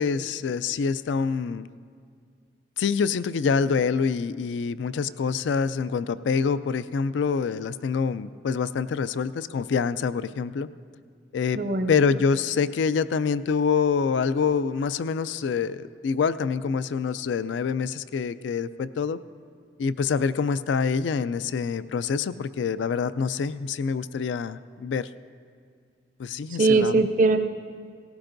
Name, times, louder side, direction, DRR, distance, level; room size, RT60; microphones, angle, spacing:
voice 1, 0.0-1.7 2.8-10.7 11.3-11.6 11.9-19.2 19.8-25.1 26.2-27.0, left 5 dB, 75° left, 15 dB, 0.3 m, -26 dB
voice 2, 11.6-12.0 26.6-27.4, right 3 dB, 45° right, 9 dB, 0.6 m, -20 dB
18.0 x 16.0 x 2.6 m, 2.1 s
head